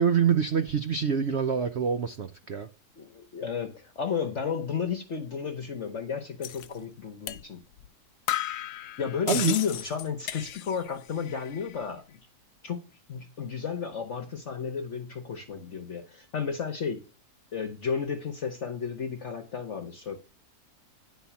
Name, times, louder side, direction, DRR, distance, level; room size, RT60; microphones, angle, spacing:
voice 1, 0.0-2.7 9.3-9.6, right 7 dB, 65° right, 0.7 m, -25 dB
voice 2, 3.0-7.6 9.0-12.2 12.6-12.8 13.1-17.0 17.5-20.2, left 6 dB, 50° left, 1.1 m, -33 dB
sound 1, 6.4-6.7 7.3-7.4 7.8-7.9 8.3-10.9 11.2-11.8, left 12 dB, 75° left, 1.1 m, -34 dB
10.5 x 4.0 x 7.0 m
omnidirectional pair, 1.9 m